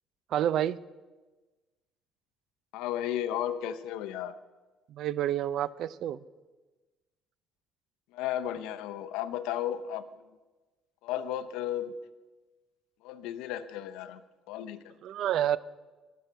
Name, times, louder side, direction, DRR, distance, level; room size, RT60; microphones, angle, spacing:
voice 1, 0.3-0.8 4.9-6.2 15.0-15.6, right 11 dB, 65° right, 19 dB, 0.4 m, -28 dB
voice 2, 2.7-4.3 8.1-10.0 11.0-11.9 13.0-14.2 14.5-14.9, left 11 dB, 90° left, 11 dB, 0.6 m, -34 dB
19.0 x 7.9 x 4.6 m, 1.2 s
cardioid pair, 110°, 0 cm